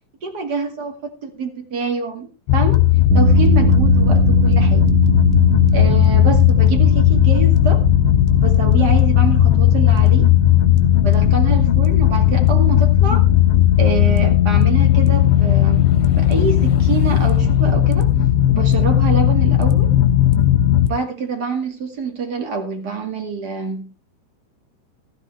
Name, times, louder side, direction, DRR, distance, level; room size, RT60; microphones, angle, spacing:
voice 1, 0.2-0.9 1.2-2.3 2.5-2.8 3.1-4.9 5.7-7.8 8.3-10.3 11.0-13.3 13.8-15.9 16.2-18.1 18.5-19.9 20.9-23.9, right 5 dB, 50° right, 3 dB, 1.1 m, -26 dB
sound 1, 2.5-20.9, left 12 dB, 80° left, 3.4 m, -15 dB
sound 2, 3.1-17.4, right 10 dB, 80° right, 2.6 m, -25 dB
14.5 x 14.0 x 3.3 m, 0.29 s
omnidirectional pair, 5.6 m